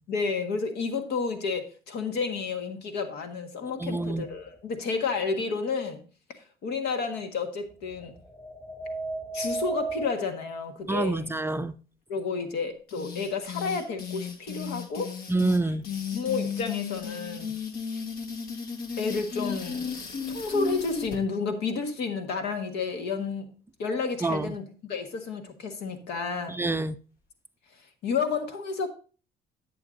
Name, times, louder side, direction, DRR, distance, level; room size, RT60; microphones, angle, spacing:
voice 1, 0.1-6.0 6.6-8.1 9.3-11.3 12.1-15.1 16.1-17.5 19.0-20.0 20.3-23.5 23.8-26.6 28.0-28.9, left 4 dB, 80° left, 1.6 m, -31 dB
voice 2, 3.8-4.3 10.9-11.7 15.3-15.8 24.2-24.5 26.5-27.0, right 2 dB, 15° right, 0.4 m, -27 dB
sound 1, 3.9-4.6 7.9-10.1, right 3 dB, 20° left, 2.4 m, -35 dB
sound 2, 12.9-21.2, left 6 dB, 65° left, 1.4 m, -35 dB
10.5 x 8.0 x 2.6 m
cardioid pair, 110°, 17 cm